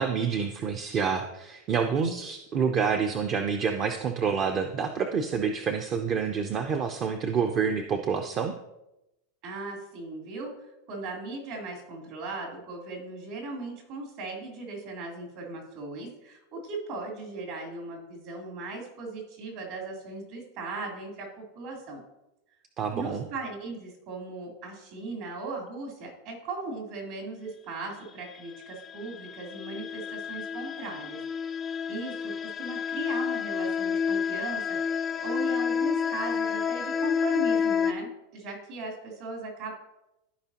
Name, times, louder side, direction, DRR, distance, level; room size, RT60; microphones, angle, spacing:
voice 1, 0.0-8.5 22.8-23.3, right 6 dB, 35° right, 6 dB, 0.6 m, -28 dB
voice 2, 9.4-10.5 10.9-22.0 22.9-31.2 31.9-39.7, right 3 dB, 60° right, -1 dB, 3.3 m, -38 dB
sound 1, 28.9-37.9, left 6 dB, 20° left, 0.5 m, -29 dB
14.5 x 5.0 x 2.9 m, 0.93 s
supercardioid pair, 135°, 0 cm